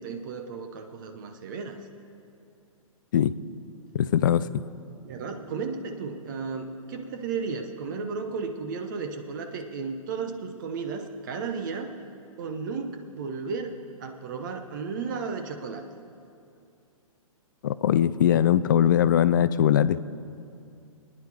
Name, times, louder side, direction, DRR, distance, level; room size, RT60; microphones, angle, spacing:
voice 1, 0.0-1.8 5.0-12.0 12.4-13.7 14.0-15.9, right 5 dB, 35° right, 5 dB, 0.9 m, -34 dB
voice 2, 3.9-4.5 17.6-20.0, left 10 dB, 35° left, 15 dB, 0.4 m, -21 dB
26.5 x 9.7 x 3.5 m, 2.5 s
figure-of-eight pair, 125°, 18 cm